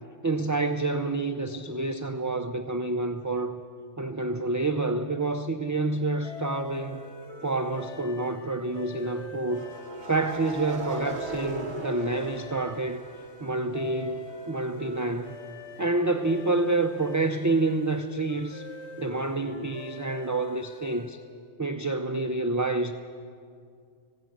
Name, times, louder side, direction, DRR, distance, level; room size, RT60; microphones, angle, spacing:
voice 1, 0.2-3.6 4.0-7.0 7.4-9.7 10.1-13.0 13.4-15.4 15.8-18.7 19.0-21.2 21.6-22.9, right 2 dB, 25° right, 6 dB, 0.4 m, -28 dB
sound 1, 6.2-21.3, left 1 dB, 70° left, 2.1 m, -44 dB
sound 2, 6.2-6.4 9.5-13.4 13.8-17.3, right 3 dB, 55° right, 1.8 m, -40 dB
18.5 x 16.0 x 9.2 m, 2.3 s
omnidirectional pair, 1.2 m